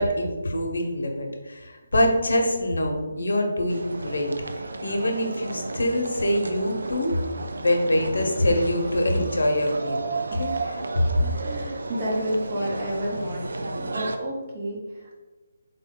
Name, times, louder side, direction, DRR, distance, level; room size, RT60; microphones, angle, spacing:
voice 1, 0.0-7.1 7.6-11.1, left 1 dB, 80° left, 2 dB, 0.7 m, -25 dB
sound 1, 3.7-14.2, right 3 dB, 75° right, 0.4 m, -33 dB
voice 2, 10.3-10.7 11.2-15.2, equal, 30° right, -3 dB, 0.8 m, -31 dB
3.7 x 2.2 x 3.6 m, 1.2 s
hypercardioid pair, 165°, 0 cm